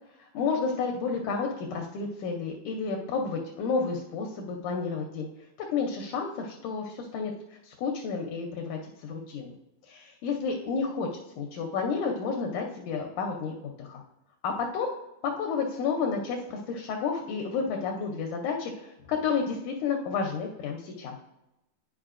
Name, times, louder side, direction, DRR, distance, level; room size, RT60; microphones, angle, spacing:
voice 1, 0.2-5.3 5.6-7.3 7.6-9.5 9.9-11.1 11.4-14.0 14.4-14.9 15.2-21.2, left 5 dB, 75° left, 1 dB, 1.9 m, -31 dB
10.5 x 5.1 x 2.5 m, 0.91 s
omnidirectional pair, 4.0 m